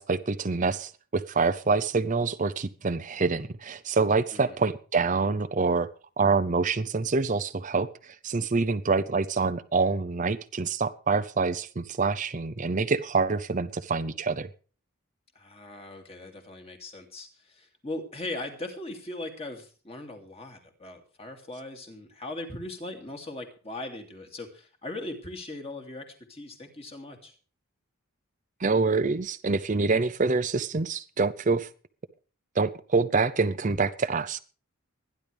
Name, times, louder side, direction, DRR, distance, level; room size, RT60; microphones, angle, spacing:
voice 1, 0.0-5.9 6.2-14.5 28.6-31.7 32.6-34.4, right 4 dB, 35° right, 10 dB, 0.6 m, -26 dB
voice 2, 15.3-27.3, left 2 dB, 25° left, 3 dB, 2.6 m, -39 dB
24.0 x 10.5 x 3.4 m, 0.38 s
head